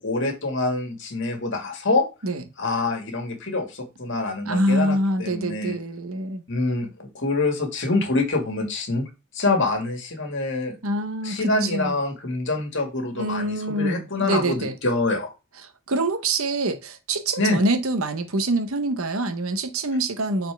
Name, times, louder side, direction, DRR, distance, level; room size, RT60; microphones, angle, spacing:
voice 1, 0.0-2.0 2.6-5.8 6.5-9.1 9.3-10.7 11.2-15.3 17.4-17.6, left 2 dB, 55° left, 2.0 m, -25 dB
voice 2, 4.4-6.4 10.8-12.0 13.1-14.7 15.9-20.5, right 1 dB, 75° right, 1.0 m, -25 dB
6.7 x 4.3 x 3.5 m
head